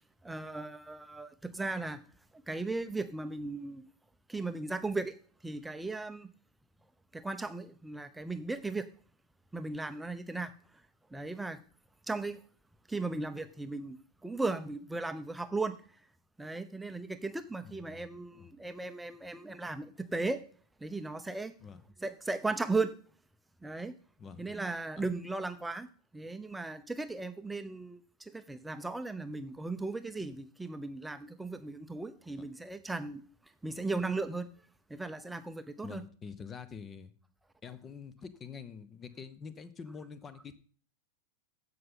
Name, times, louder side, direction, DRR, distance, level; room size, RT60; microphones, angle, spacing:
voice 1, 0.2-2.0 2.5-3.8 4.3-5.1 5.4-6.3 7.1-8.9 9.5-10.5 11.1-11.6 12.1-12.4 12.9-14.0 14.2-15.8 16.4-20.4 20.8-21.5 22.0-22.9 23.6-23.9 24.4-25.9 26.1-28.0 28.3-33.2 33.6-34.5 34.9-36.0, right 3 dB, 5° right, 0.8 m, -36 dB
voice 2, 17.6-18.1 18.3-18.5 21.6-21.8 24.2-24.4 25.0-25.1 35.8-37.1 37.6-40.5, left 6 dB, 20° left, 0.9 m, -46 dB
15.5 x 5.7 x 3.8 m
figure-of-eight pair, 90°, 0 cm